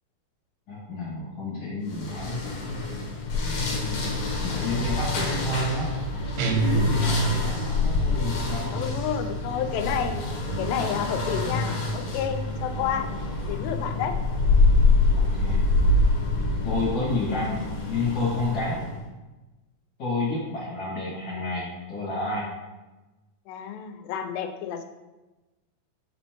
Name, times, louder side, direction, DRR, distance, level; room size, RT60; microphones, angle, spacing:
voice 1, 0.7-2.5 4.4-5.9 6.4-8.8 12.8-13.0 15.1-15.6 16.6-18.9 20.0-22.5, left 2 dB, 45° left, -8 dB, 1.8 m, -30 dB
sound 1, 1.9-19.0, left 2 dB, 65° left, 1.7 m, -26 dB
voice 2, 3.7-4.0 8.7-10.2 10.6-13.1 13.4-14.1 23.5-24.8, left 8 dB, 80° left, 6 dB, 2.3 m, -30 dB
sound 2, 6.4-7.7, right 4 dB, 80° right, 2.1 m, -25 dB
7.4 x 4.2 x 3.0 m, 1.1 s
omnidirectional pair, 4.3 m